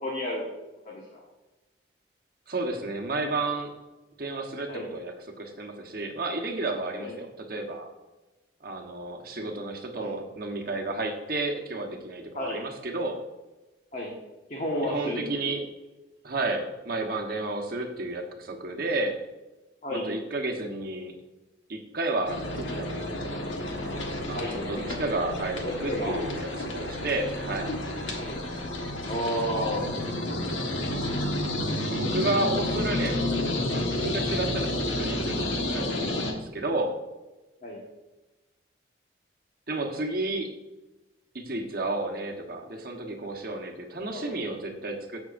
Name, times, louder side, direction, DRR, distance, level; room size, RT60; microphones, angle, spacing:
voice 1, 0.0-0.4 0.8-1.2 4.7-4.9 7.0-7.1 9.4-9.5 10.0-10.1 12.3-12.7 13.9-14.1 14.5-15.5 19.8-20.0 24.3-24.8 25.6-26.2 28.2-28.4 29.0-29.8 37.6-37.8 44.1-44.3, equal, 40° left, -3 dB, 1.4 m, -32 dB
voice 2, 2.5-3.7 4.2-7.9 8.6-13.2 14.8-15.6 16.2-19.2 19.9-21.2 21.7-23.1 24.3-27.7 31.9-36.9 39.7-40.5 41.3-45.2, right 2 dB, 50° right, 2 dB, 1.2 m, -32 dB
sound 1, 22.3-36.3, left 1 dB, 85° left, 1.4 m, -30 dB
15.5 x 6.3 x 2.6 m, 1.1 s
head